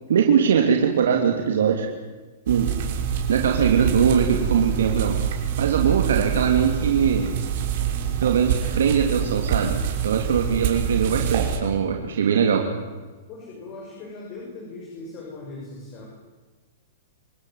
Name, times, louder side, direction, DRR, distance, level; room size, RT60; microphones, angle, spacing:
voice 1, 0.1-1.9 2.5-2.7 3.3-5.2 5.6-7.3 8.2-9.8 10.0-12.6, right 7 dB, 85° right, 2 dB, 3.2 m, -21 dB
sound 1, 2.5-11.6, right 8 dB, 55° right, 6.1 m, -26 dB
voice 2, 13.3-16.1, left 3 dB, 35° left, -1 dB, 7.3 m, -39 dB
28.0 x 16.5 x 9.8 m, 1.3 s
hypercardioid pair, 145°, 0 cm